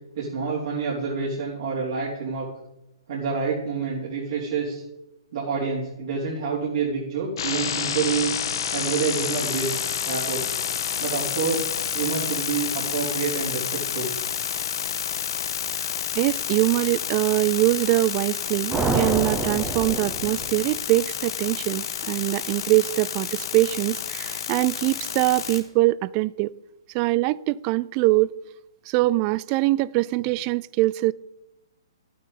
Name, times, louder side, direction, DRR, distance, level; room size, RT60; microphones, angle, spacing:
voice 1, 0.1-2.5 3.1-4.8 5.3-8.3 8.7-10.4 11.0-11.7 11.9-14.1, right 5 dB, 60° right, -7 dB, 3.8 m, -27 dB
sound 1, 7.4-25.6, left 8 dB, 60° left, 1.4 m, -29 dB
voice 2, 16.1-26.5 26.9-28.4 28.9-31.1, right 19 dB, 35° right, 22 dB, 0.3 m, -23 dB
sound 2, 18.7-20.9, right 3 dB, 15° right, 0.9 m, -27 dB
12.0 x 9.1 x 4.1 m, 0.93 s
hypercardioid pair, 130°, 3 cm